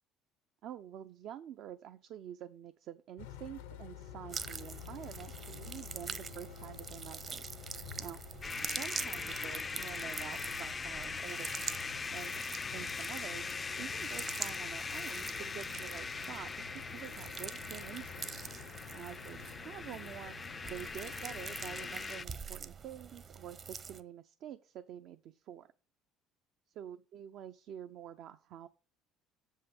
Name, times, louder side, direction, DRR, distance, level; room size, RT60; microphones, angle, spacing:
voice 1, 0.6-7.4 8.0-8.2 8.6-12.4 12.7-13.5 13.8-18.3 18.9-20.4 20.6-25.7 26.7-28.7, right 10 dB, 60° right, 9 dB, 0.5 m, -48 dB
sound 1, 3.2-21.9, left 9 dB, 90° left, 0.7 m, -51 dB
sound 2, 4.3-24.0, right 5 dB, 40° right, 0.8 m, -45 dB
sound 3, 8.4-22.2, left 4 dB, 30° left, 0.3 m, -41 dB
7.1 x 5.5 x 5.1 m, 0.35 s
hypercardioid pair, 75°, 0 cm